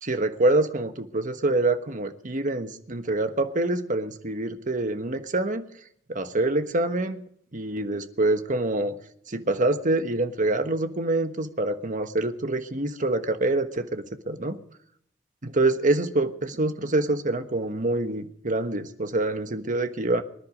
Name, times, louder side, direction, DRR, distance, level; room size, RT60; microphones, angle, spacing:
voice 1, 0.0-5.7 6.1-7.2 7.5-9.0 9.3-14.6 15.4-20.2, right 2 dB, 45° right, 8 dB, 1.3 m, -26 dB
24.5 x 10.5 x 5.2 m, 0.68 s
head